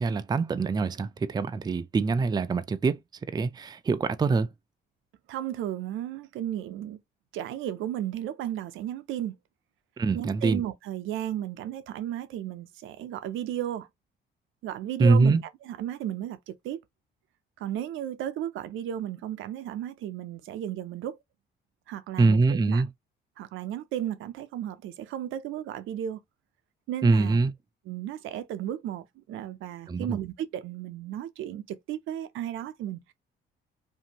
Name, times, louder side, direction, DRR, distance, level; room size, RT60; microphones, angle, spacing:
voice 1, 0.0-3.0 3.3-4.5 10.0-10.6 15.0-15.4 22.2-22.9 27.0-27.5 29.9-30.2, right 3 dB, 20° right, 0.4 m, -24 dB
voice 2, 5.3-7.0 7.3-9.3 10.1-13.9 14.6-15.4 15.6-16.8 17.6-21.2 21.9-22.8 23.4-26.2 26.9-27.4 27.9-33.1, right 11 dB, 80° right, 0.5 m, -34 dB
2.6 x 2.5 x 2.8 m
cardioid pair, 90°, 20 cm